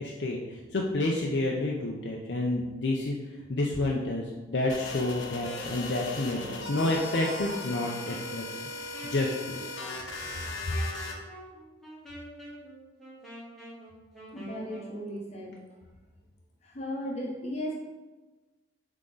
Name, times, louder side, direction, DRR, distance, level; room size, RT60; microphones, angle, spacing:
voice 1, 0.0-3.2 3.5-8.4 9.0-9.7 10.7-10.8, left 2 dB, 60° left, -1 dB, 0.6 m, -29 dB
sound 1, 4.7-11.1, left 2 dB, 90° left, 1.0 m, -38 dB
Wind instrument woodwind instrument, 6.3-15.0, right 1 dB, ahead, 1.7 m, -46 dB
voice 2, 14.3-15.5 16.6-17.7, equal, 35° left, -2 dB, 1.0 m, -36 dB
7.5 x 3.7 x 3.9 m, 1.2 s
head